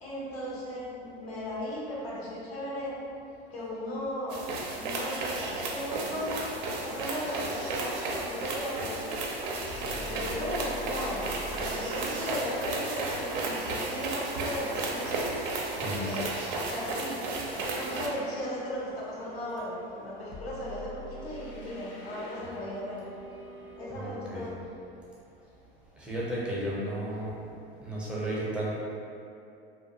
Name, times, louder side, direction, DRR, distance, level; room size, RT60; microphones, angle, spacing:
voice 1, 0.0-2.9 3.5-4.4 4.7-9.2 9.9-15.4 15.7-16.2 16.7-17.2 17.5-23.0 23.8-24.5, equal, 85° left, -6 dB, 0.8 m, -36 dB
sound 1, 4.3-18.1, right 2 dB, 55° right, 0.5 m, -33 dB
sound 2, 5.9-23.8, left 1 dB, 50° left, 0.6 m, -46 dB
voice 2, 15.7-16.0 23.9-24.5 26.0-27.3 27.8-28.7, right 1 dB, 5° right, -7 dB, 0.6 m, -33 dB
2.4 x 2.3 x 2.7 m, 2.6 s
hypercardioid pair, 90°, 30 cm